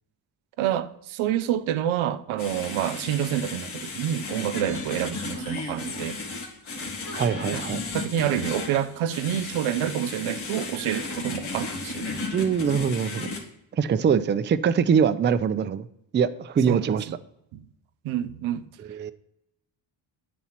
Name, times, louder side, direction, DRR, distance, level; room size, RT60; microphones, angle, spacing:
voice 1, 0.6-6.2 7.5-7.6 7.9-12.6 16.7-16.9 17.5-17.7 18.0-18.7, right 11 dB, 90° right, 0.7 m, -28 dB
sound 1, 2.4-13.4, left 3 dB, 90° left, 1.9 m, -34 dB
voice 2, 7.1-7.8 12.3-13.3 13.7-15.9 16.1-17.1 18.8-19.1, right 7 dB, 25° right, 0.4 m, -23 dB
9.3 x 4.2 x 5.8 m
cardioid pair, 95°, 47 cm